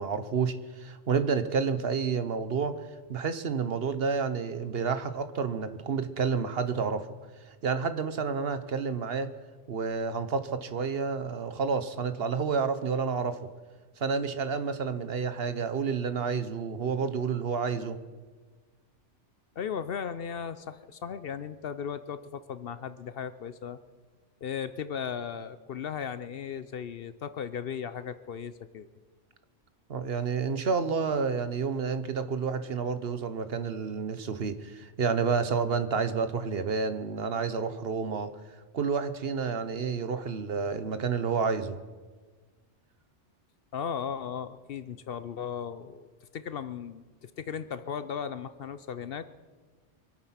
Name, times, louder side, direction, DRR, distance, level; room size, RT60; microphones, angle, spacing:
voice 1, 0.0-2.8 3.1-7.1 7.6-9.3 9.7-13.4 14.0-18.0 29.9-38.3 38.7-41.8, right 5 dB, 60° right, 11 dB, 1.1 m, -30 dB
voice 2, 19.6-23.8 24.4-28.9 43.7-49.3, left 7 dB, 60° left, 13 dB, 0.8 m, -36 dB
25.0 x 8.8 x 5.8 m, 1.4 s
omnidirectional pair, 1.2 m